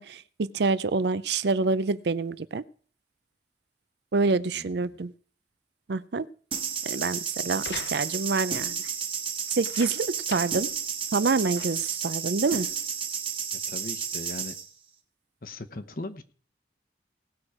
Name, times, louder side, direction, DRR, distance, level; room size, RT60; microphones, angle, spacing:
voice 1, 0.0-2.6 4.1-5.1 5.9-6.3 6.9-8.8 9.6-10.7 11.1-12.7, right 4 dB, 70° right, 17 dB, 0.5 m, -27 dB
voice 2, 4.5-5.0 13.7-14.5 15.4-16.2, left 2 dB, 50° left, 9 dB, 1.0 m, -39 dB
sound 1, 6.5-14.6, right 7 dB, 30° right, 1.5 m, -32 dB
sound 2, 7.6-8.4 9.5-10.7 11.1-11.2 11.5-12.0 12.8-12.9, left 7 dB, 70° left, 0.5 m, -43 dB
18.0 x 6.3 x 4.9 m, 0.43 s
head